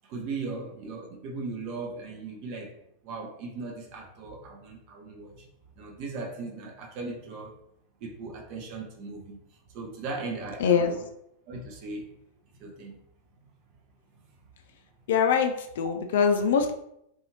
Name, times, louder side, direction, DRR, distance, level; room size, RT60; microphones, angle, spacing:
voice 1, 0.0-2.8 3.0-5.5 5.7-7.6 8.0-9.4 9.7-11.0 11.5-12.1 12.6-13.0 14.1-14.2, right 3 dB, 45° right, 1 dB, 0.7 m, -38 dB
voice 2, 10.6-11.0 15.1-16.7, left 6 dB, 55° left, 7 dB, 0.3 m, -23 dB
2.6 x 2.3 x 2.9 m, 0.76 s
figure-of-eight pair, 90°, 0 cm